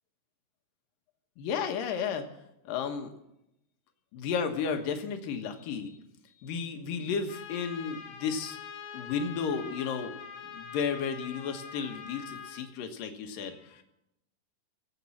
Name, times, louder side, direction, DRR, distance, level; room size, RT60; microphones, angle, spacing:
voice 1, 1.4-2.2 2.6-3.1 4.1-5.9 6.4-8.6 8.9-10.1 10.5-13.8, left 6 dB, 65° left, 5 dB, 2.8 m, -33 dB
Trumpet, 7.3-12.7, left 7 dB, 90° left, 4.1 m, -44 dB
20.5 x 8.4 x 7.2 m, 0.83 s
omnidirectional pair, 4.8 m